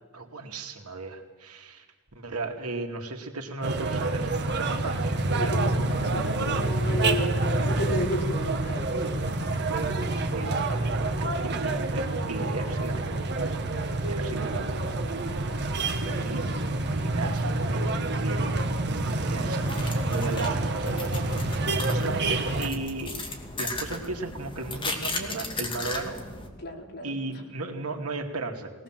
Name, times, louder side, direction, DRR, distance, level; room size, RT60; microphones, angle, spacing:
voice 1, 0.1-1.8 2.1-5.8 9.7-13.6 14.1-15.1 15.5-16.5 16.9-18.5 19.3-21.2 21.5-23.2 23.6-26.3 27.0-28.7, right 3 dB, 80° right, 3 dB, 2.5 m, -36 dB
sound 1, 3.6-22.7, right 2 dB, 50° right, 1.6 m, -27 dB
voice 2, 5.4-9.2 26.6-27.4, left 1 dB, 50° left, 0 dB, 4.0 m, -33 dB
sound 2, 19.6-26.5, left 2 dB, 25° left, 2.6 m, -36 dB
21.5 x 19.0 x 7.5 m, 1.2 s
head